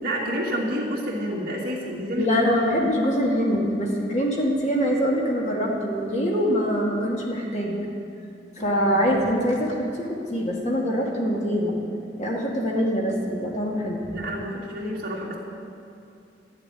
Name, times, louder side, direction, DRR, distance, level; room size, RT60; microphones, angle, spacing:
voice 1, 0.0-2.3 2.6-2.7 8.6-9.0 14.1-15.4, equal, 55° right, -3 dB, 2.6 m, -29 dB
voice 2, 2.2-7.8 8.6-11.8 12.2-14.2, equal, 40° left, -2 dB, 2.2 m, -24 dB
13.0 x 7.2 x 10.0 m, 2.6 s
head